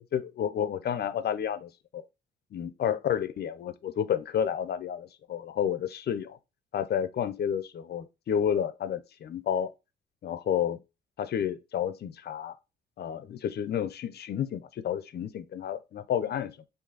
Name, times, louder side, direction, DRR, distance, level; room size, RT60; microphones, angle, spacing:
voice 1, 0.1-2.0 2.5-6.4 6.7-9.7 10.2-10.8 11.2-12.6 13.0-16.6, left 9 dB, 55° left, 0.6 m, -30 dB
4.9 x 2.7 x 3.9 m
cardioid pair, 90°, 20 cm